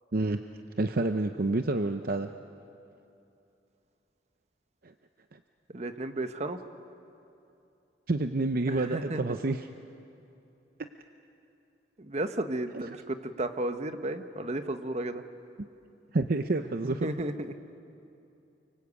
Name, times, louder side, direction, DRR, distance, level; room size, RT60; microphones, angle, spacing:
voice 1, 0.8-2.3 5.3-5.4 8.1-9.6 15.6-15.7 16.1-17.1, right 2 dB, 55° right, 8 dB, 0.7 m, -28 dB
voice 2, 5.7-6.6 8.7-9.4 12.0-15.2 16.8-17.6, right 1 dB, 40° right, 8 dB, 1.1 m, -33 dB
29.5 x 23.5 x 8.4 m, 2.8 s
head